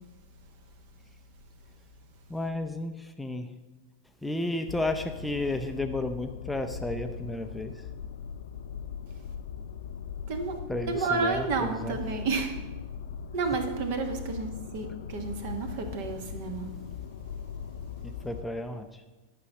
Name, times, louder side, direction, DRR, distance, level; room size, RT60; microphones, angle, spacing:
voice 1, 2.3-3.5 4.2-7.8 10.7-12.0 18.0-19.0, left 1 dB, 5° left, 6 dB, 0.6 m, -33 dB
sound 1, 4.7-18.5, left 7 dB, 60° left, 0.4 m, -40 dB
voice 2, 10.3-10.6 10.9-12.5 13.3-16.7, right 4 dB, 50° right, 6 dB, 1.4 m, -31 dB
11.0 x 5.6 x 6.2 m, 1.2 s
figure-of-eight pair, 90°, 0 cm